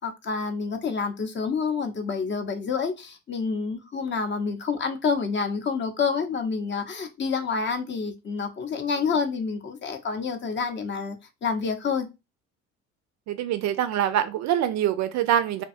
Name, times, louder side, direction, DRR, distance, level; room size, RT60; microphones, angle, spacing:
voice 1, 0.0-12.1, left 5 dB, 30° left, 0.6 m, -28 dB
voice 2, 13.3-15.6, right 10 dB, 50° right, 0.4 m, -24 dB
2.6 x 2.2 x 2.5 m
hypercardioid pair, 60°, 38 cm